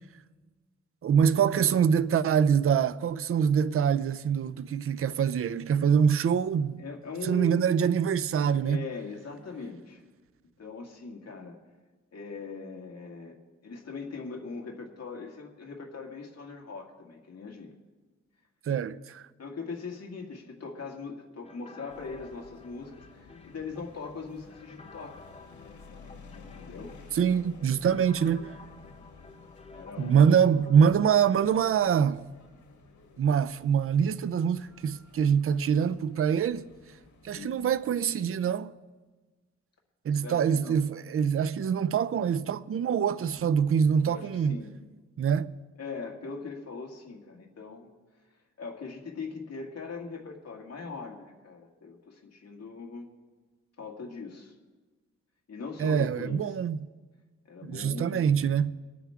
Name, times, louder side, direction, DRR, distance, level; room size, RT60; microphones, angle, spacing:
voice 1, 1.0-6.8 7.2-8.8 18.7-19.3 27.1-28.5 30.0-32.3 33.2-36.7 37.2-38.8 40.0-44.6 45.2-45.5 55.8-56.8 57.6-58.7, right 7 dB, 50° right, 0.5 m, -25 dB
voice 2, 6.8-7.6 8.6-10.0 10.6-11.6 12.1-13.4 13.6-17.7 19.4-25.2 26.6-26.9 27.3-27.4 29.7-30.3 37.3-37.6 40.2-40.8 44.1-44.8 45.8-47.9 48.6-53.1 53.8-54.5 55.5-56.6 57.5-58.3, left 4 dB, 55° left, 2.2 m, -40 dB
sound 1, 21.4-31.8, left 3 dB, 20° left, 0.8 m, -52 dB
sound 2, 21.9-38.0, left 4 dB, 85° left, 1.8 m, -53 dB
24.5 x 9.3 x 3.6 m
cardioid pair, 95°, 29 cm